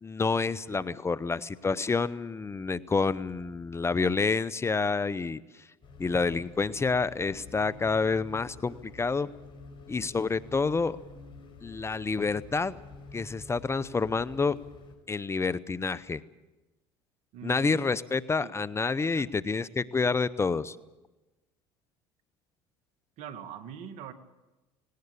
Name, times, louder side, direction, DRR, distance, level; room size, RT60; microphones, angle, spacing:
voice 1, 0.0-5.4 6.0-9.3 9.9-11.0 11.6-12.8 13.1-14.6 15.1-16.2 17.4-20.8, left 4 dB, 20° left, 17 dB, 0.7 m, -28 dB
sound 1, 5.8-15.0, left 3 dB, 40° left, 5.4 m, -49 dB
voice 2, 17.3-17.8 18.4-18.6 19.0-19.3 23.2-24.1, right 8 dB, 65° right, 10 dB, 1.8 m, -43 dB
19.0 x 18.0 x 8.3 m, 1.1 s
hypercardioid pair, 80°, 13 cm